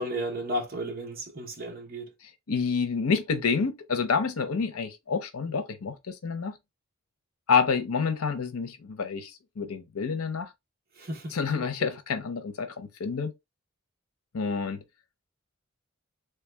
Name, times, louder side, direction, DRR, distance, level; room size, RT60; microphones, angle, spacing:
voice 1, 0.0-2.1 11.0-11.9, equal, 45° right, 0.9 m, -34 dB
voice 2, 2.5-6.5 7.5-10.5 11.3-13.3 14.3-14.8, left 5 dB, 85° left, 0.7 m, -28 dB
3.3 x 2.3 x 3.3 m
head